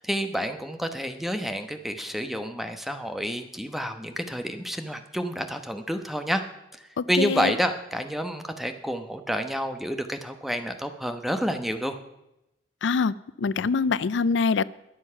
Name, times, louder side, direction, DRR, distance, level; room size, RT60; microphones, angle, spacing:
voice 1, 0.0-6.4 6.7-12.0, equal, ahead, 1.0 m, -29 dB
voice 2, 7.0-7.5 12.8-14.6, left 5 dB, 85° left, 0.4 m, -24 dB
21.5 x 7.3 x 5.7 m
head